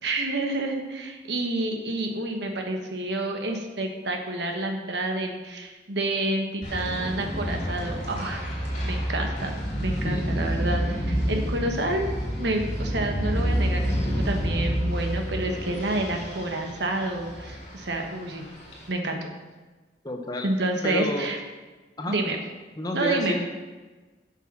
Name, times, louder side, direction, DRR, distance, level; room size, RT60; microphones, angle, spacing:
voice 1, 0.0-8.5 8.8-18.4 18.9-19.3 20.4-21.4 22.1-22.4 22.9-23.4, right 2 dB, 65° right, 3 dB, 1.2 m, -29 dB
wildwood bathroom, 6.6-18.9, equal, 40° left, 3.1 m, -29 dB
voice 2, 20.0-20.5 20.8-21.3 22.0-22.2 22.8-23.4, left 2 dB, 20° left, 3 dB, 0.7 m, -30 dB
8.1 x 5.7 x 6.1 m, 1.3 s
head